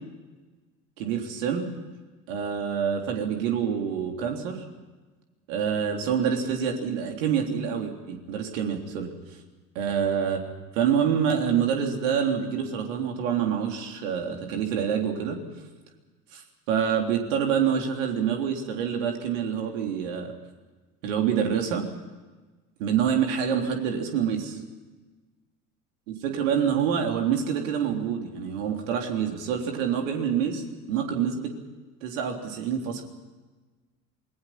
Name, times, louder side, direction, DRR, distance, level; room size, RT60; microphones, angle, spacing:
voice 1, 1.0-1.7 2.3-4.6 5.5-9.1 9.8-10.4 10.7-15.4 16.3-16.4 16.7-20.3 21.0-21.9 22.8-24.6 26.1-30.6 30.9-31.5 32.0-33.0, right 8 dB, 60° right, 3 dB, 3.6 m, -26 dB
27.5 x 20.5 x 5.9 m, 1.3 s
figure-of-eight pair, 65°, 43 cm